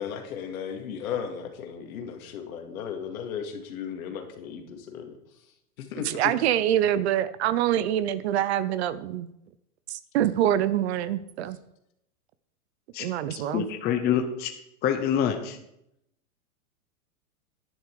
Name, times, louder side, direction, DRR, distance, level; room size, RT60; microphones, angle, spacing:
voice 1, 0.0-5.2 5.8-6.3, left 7 dB, 65° left, 4 dB, 2.4 m, -35 dB
voice 2, 6.0-9.3 9.9-11.6 13.0-13.7, right 11 dB, 45° right, 15 dB, 0.6 m, -25 dB
voice 3, 13.5-14.5 14.8-15.6, left 9 dB, 20° left, 5 dB, 0.8 m, -26 dB
10.5 x 10.0 x 4.8 m, 0.79 s
hypercardioid pair, 145°, 46 cm